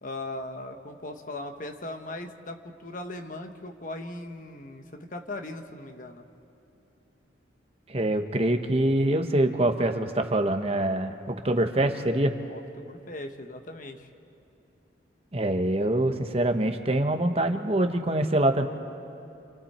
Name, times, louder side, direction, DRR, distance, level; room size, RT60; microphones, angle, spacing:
voice 1, 0.0-6.2 12.4-14.1, left 2 dB, 45° left, 5 dB, 1.3 m, -39 dB
voice 2, 7.9-12.3 15.3-18.7, right 1 dB, 35° right, 6 dB, 1.1 m, -25 dB
30.0 x 27.5 x 4.4 m, 2.7 s
head